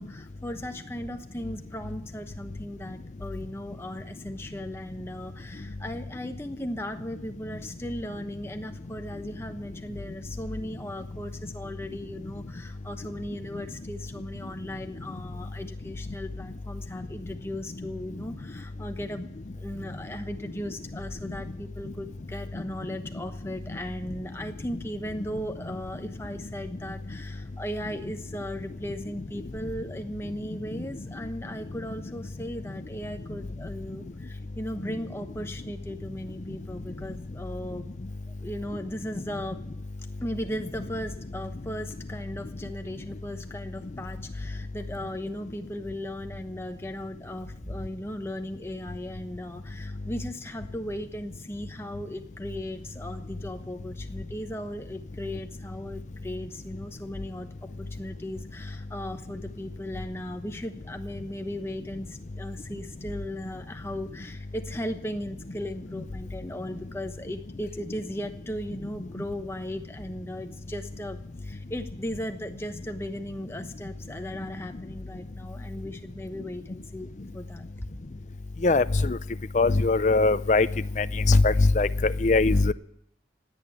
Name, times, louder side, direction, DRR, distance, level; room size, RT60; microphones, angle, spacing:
voice 1, 0.0-37.9 38.3-39.6 40.2-77.9, equal, 15° left, 6 dB, 1.0 m, -37 dB
voice 2, 78.6-79.2 79.5-80.7 81.0-82.7, left 3 dB, 40° left, 14 dB, 0.5 m, -21 dB
17.0 x 9.2 x 8.8 m, 0.74 s
head